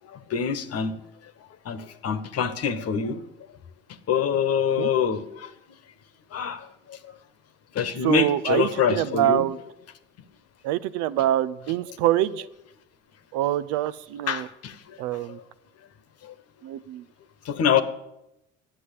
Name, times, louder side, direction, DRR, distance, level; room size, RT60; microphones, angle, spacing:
voice 1, 0.1-0.9 1.6-3.2 4.1-5.5 6.3-7.0 7.7-9.5 14.3-14.8 15.3-15.4 16.2-16.3 17.4-17.8, left 7 dB, 45° left, 12 dB, 1.3 m, -25 dB
voice 2, 8.0-9.6 10.6-12.5 13.3-14.5 15.0-15.4 16.6-17.0, right 13 dB, 65° right, 14 dB, 0.6 m, -25 dB
10.5 x 7.8 x 8.3 m, 0.86 s
hypercardioid pair, 60°, 33 cm